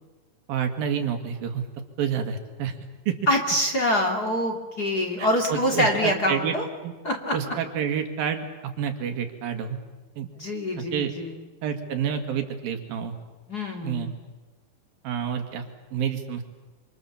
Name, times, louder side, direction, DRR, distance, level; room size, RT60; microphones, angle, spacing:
voice 1, 0.5-1.6 2.0-2.8 3.1-3.2 5.2-6.6 6.8-6.9 7.3-8.4 8.8-9.8 10.2-10.3 10.8-11.1 11.6-13.1 13.8-14.1 15.0-15.6 15.9-16.4, right 8 dB, 80° right, 6 dB, 3.8 m, -28 dB
voice 2, 3.3-6.7 7.0-7.4 10.4-11.3 13.5-14.1, left 1 dB, 30° left, 2 dB, 2.4 m, -25 dB
26.5 x 26.5 x 7.3 m, 1.2 s
omnidirectional pair, 4.2 m